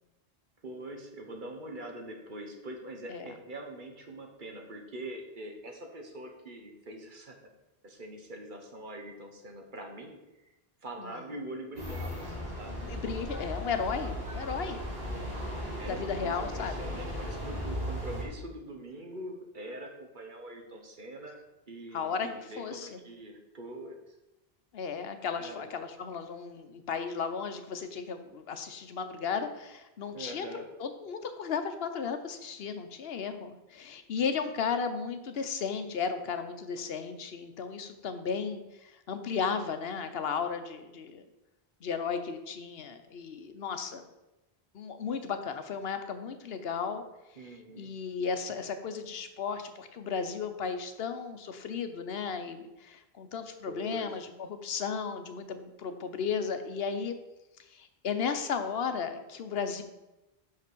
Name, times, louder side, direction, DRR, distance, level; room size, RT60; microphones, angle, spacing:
voice 1, 0.6-7.5 7.8-10.5 10.8-12.8 14.3-14.8 15.8-21.4 21.7-24.2 25.4-25.6 30.1-30.7 47.4-47.9 53.7-54.2, right 1 dB, 55° right, 3 dB, 1.3 m, -43 dB
sound 1, 11.8-18.2, equal, 75° right, 2.9 m, -37 dB
voice 2, 12.8-14.8 15.9-16.9 21.9-22.3 22.6-23.0 24.7-30.5 30.8-41.2 41.8-44.0 44.7-47.0 47.8-57.1 57.7-59.8, left 6 dB, 75° left, 8 dB, 1.0 m, -34 dB
5.9 x 5.8 x 6.1 m, 0.97 s
omnidirectional pair, 1.0 m